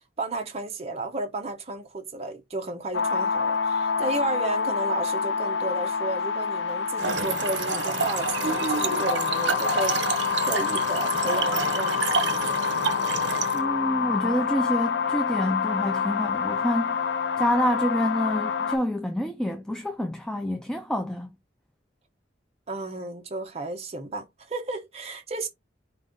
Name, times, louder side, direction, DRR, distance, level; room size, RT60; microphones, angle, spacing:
voice 1, 0.2-12.3 22.7-25.5, right 2 dB, 35° right, 0.9 m, -33 dB
sound 1, 2.9-18.8, left 6 dB, 70° left, 0.6 m, -27 dB
Trickle dribble / Fill (with liquid), 7.0-13.6, right 4 dB, 75° right, 0.8 m, -28 dB
voice 2, 13.5-17.0 17.4-21.3, equal, 5° left, 0.5 m, -27 dB
5.1 x 2.5 x 3.7 m
head